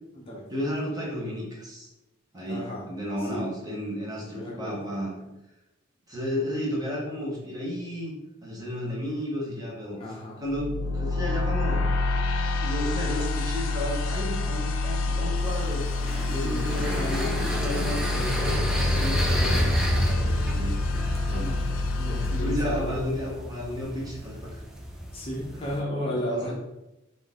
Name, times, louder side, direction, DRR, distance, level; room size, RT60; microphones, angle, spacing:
voice 1, 0.5-1.9 2.3-5.1 6.1-8.2 8.4-10.0 10.4-11.9 12.6-15.9 16.3-18.6 18.9-20.8 21.3-21.6 22.1-24.6 25.6-26.5, equal, 20° right, -4 dB, 1.0 m, -33 dB
voice 2, 2.5-2.8 3.2-3.5 4.3-4.8 10.0-10.4 16.4-16.6 18.4-18.6 21.3-21.6 22.0-23.0 25.1-26.5, equal, 30° left, -3 dB, 0.7 m, -33 dB
sound 1, 10.5-23.5, left 3 dB, 75° left, 0.3 m, -28 dB
sound 2, 15.4-25.8, equal, 5° right, 0.3 m, -30 dB
3.8 x 2.6 x 3.6 m, 0.95 s
head